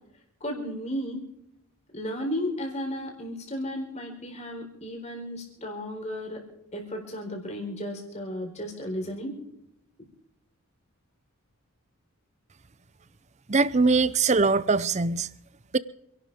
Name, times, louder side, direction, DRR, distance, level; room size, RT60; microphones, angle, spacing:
voice 1, 0.4-1.2 1.9-6.4 6.7-9.3, equal, 30° left, 4.3 m, -34 dB
voice 2, 13.5-15.3 15.7-15.8, right 4 dB, 30° right, 0.6 m, -22 dB
28.0 x 12.0 x 3.6 m
head